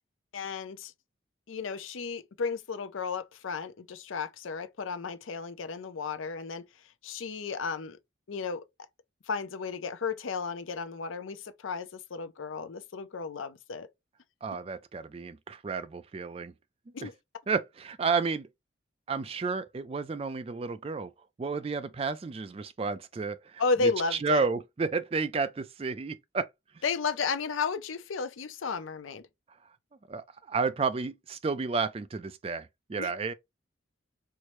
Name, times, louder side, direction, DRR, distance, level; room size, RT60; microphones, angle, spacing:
voice 1, 0.3-0.9 1.5-6.6 7.0-8.0 8.3-8.6 9.3-13.9 16.9-17.1 23.6-24.5 26.8-29.2 33.0-33.1, left 4 dB, 85° left, 0.6 m, -33 dB
voice 2, 14.4-16.5 17.0-17.1 17.5-18.5 19.1-21.1 21.4-26.5 30.1-33.3, right 4 dB, 30° right, 0.3 m, -31 dB
4.5 x 2.0 x 3.1 m
head